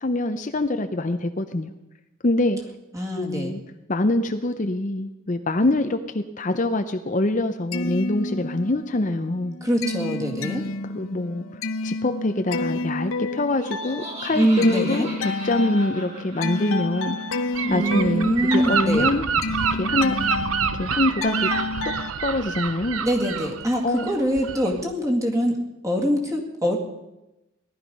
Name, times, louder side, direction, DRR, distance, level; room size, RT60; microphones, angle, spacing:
voice 1, 0.0-1.7 2.2-2.6 3.1-3.6 3.9-9.6 10.9-11.4 11.8-17.2 17.7-19.2 19.7-20.1 20.7-21.5 22.2-23.0 23.8-24.1, left 2 dB, 40° left, 7 dB, 0.7 m, -24 dB
voice 2, 2.9-3.6 9.6-10.6 14.3-15.1 17.6-19.1 23.0-26.8, equal, 15° right, 0 dB, 2.2 m, -24 dB
sound 1, 7.5-8.9 9.3-22.1, left 2 dB, 85° left, 0.8 m, -30 dB
Laughter, 13.5-19.1, right 1 dB, 30° right, 4.5 m, -40 dB
Gull seagull / Wind, 17.5-24.8, right 6 dB, 90° right, 0.7 m, -27 dB
18.0 x 12.0 x 5.4 m, 0.96 s
head